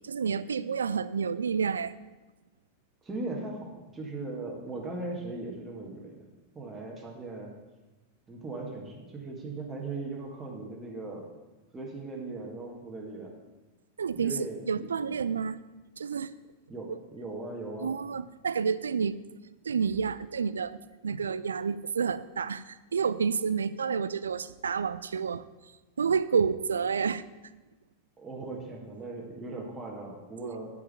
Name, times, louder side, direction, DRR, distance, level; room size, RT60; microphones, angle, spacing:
voice 1, 0.0-1.9 14.0-15.6 16.0-16.3 16.9-17.0 17.8-19.2 19.6-25.4 26.0-27.2 30.4-30.5, right 6 dB, 70° right, 15 dB, 0.4 m, -29 dB
voice 2, 3.0-6.2 6.5-7.5 8.3-11.3 11.7-13.4 14.1-14.9 16.7-18.0 28.2-30.7, right 2 dB, 15° right, -2 dB, 1.8 m, -38 dB
8.6 x 5.6 x 6.9 m, 1.1 s
figure-of-eight pair, 90°, 0 cm